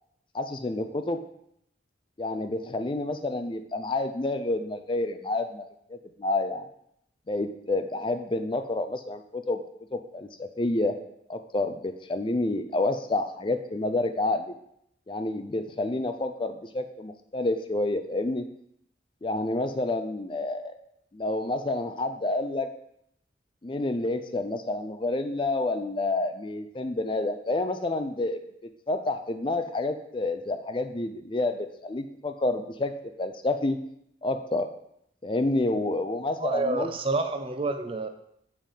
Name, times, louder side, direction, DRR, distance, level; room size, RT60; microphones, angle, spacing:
voice 1, 0.3-1.2 2.2-6.7 7.3-9.6 9.9-11.0 11.3-14.6 15.1-18.5 19.2-20.8 21.1-22.7 23.6-33.8 34.2-34.7 35.2-36.9, left 2 dB, 25° left, 8 dB, 0.4 m, -29 dB
voice 2, 36.4-38.1, right 3 dB, 30° right, 7 dB, 0.5 m, -28 dB
7.3 x 3.5 x 5.7 m, 0.73 s
head